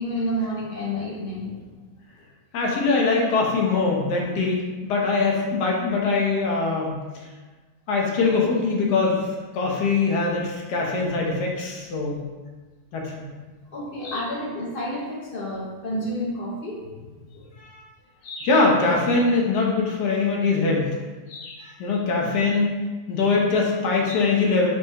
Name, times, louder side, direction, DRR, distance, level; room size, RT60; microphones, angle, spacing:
voice 1, 0.0-1.8 2.2-2.3 13.7-17.1 17.3-17.5, equal, 60° left, -4 dB, 0.6 m, -30 dB
voice 2, 2.5-7.0 7.9-9.2 9.5-12.2 12.9-13.3 14.0-14.2 17.7-17.8 18.2-20.9 21.3-22.7 23.1-24.7, left 3 dB, 80° left, -1 dB, 1.4 m, -22 dB
4.9 x 2.2 x 4.4 m, 1.3 s
omnidirectional pair, 1.8 m